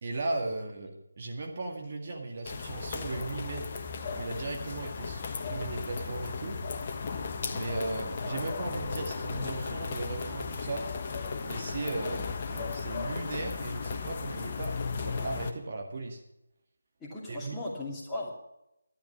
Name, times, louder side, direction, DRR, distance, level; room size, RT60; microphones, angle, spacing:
voice 1, 0.0-3.7 4.1-6.6 7.5-10.8 11.4-16.2 17.3-17.6, right 2 dB, 40° right, 2 dB, 1.9 m, -37 dB
sound 1, 2.4-15.5, left 4 dB, 30° left, 1.2 m, -35 dB
voice 2, 17.0-18.3, left 1 dB, 10° left, -6 dB, 2.7 m, -37 dB
12.5 x 11.5 x 5.9 m, 0.84 s
figure-of-eight pair, 155°, 0 cm